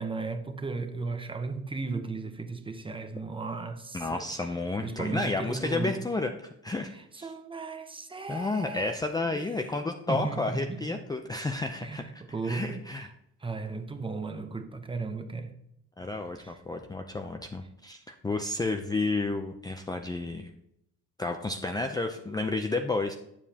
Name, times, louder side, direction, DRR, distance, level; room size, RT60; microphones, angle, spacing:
voice 1, 0.0-4.3 4.8-6.0 6.9-11.0 11.8-13.1 13.4-15.6 16.4-16.6, right 4 dB, 15° right, 0.8 m, -36 dB
voice 2, 3.9-7.3 8.3-13.1 16.0-20.5 21.2-23.1, left 3 dB, 15° left, 0.5 m, -31 dB
8.7 x 7.3 x 2.8 m
cardioid pair, 110°, 30 cm